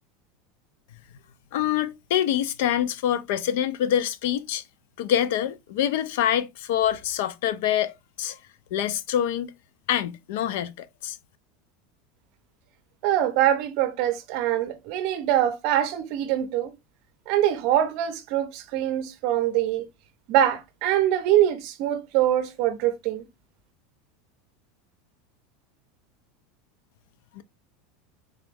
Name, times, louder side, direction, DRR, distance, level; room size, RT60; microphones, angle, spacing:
voice 1, 1.5-4.6 5.0-8.4 8.7-9.5 9.9-11.2 27.3-27.4, left 10 dB, 60° left, 0.4 m, -25 dB
voice 2, 13.0-16.7 17.3-19.8 20.3-23.3, right 12 dB, 45° right, 0.6 m, -24 dB
3.6 x 3.0 x 3.4 m
supercardioid pair, 180°, 0 cm